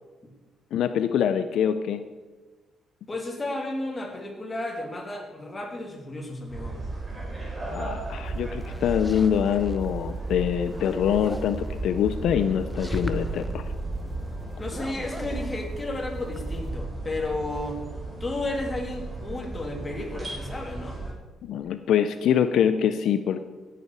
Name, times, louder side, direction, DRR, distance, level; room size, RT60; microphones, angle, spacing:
voice 1, 0.7-2.0 7.7-13.6 21.4-23.4, left 9 dB, 75° left, 10 dB, 0.5 m, -24 dB
voice 2, 3.1-6.8 14.5-17.8 18.2-21.0, left 2 dB, 25° left, 1 dB, 2.8 m, -33 dB
sound 1, 6.5-21.1, right 2 dB, 25° right, 4.1 m, -34 dB
sound 2, 8.3-9.9 10.3-11.7 12.5-13.5 14.6-16.7, equal, ahead, 1.1 m, -39 dB
16.5 x 8.4 x 4.7 m, 1.3 s
cardioid pair, 90°, 0 cm